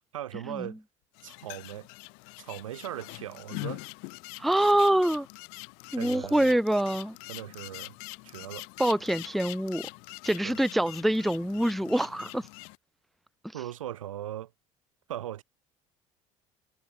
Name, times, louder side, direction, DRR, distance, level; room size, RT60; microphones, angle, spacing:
voice 1, 0.1-0.8 1.2-1.9 2.4-3.8 5.9-6.6 7.3-7.9 8.2-8.7 10.4-10.6 11.9-12.0 13.5-14.5 15.1-15.4, right 12 dB, 75° right, 0.7 m, -39 dB
sound 1, 1.1-12.8, left 40 dB or more, 60° left, 1.7 m, -43 dB
voice 2, 4.4-5.3 5.9-7.2 8.8-9.9 10.2-12.5, right 1 dB, ahead, 0.3 m, -25 dB
figure-of-eight pair, 60°, 17 cm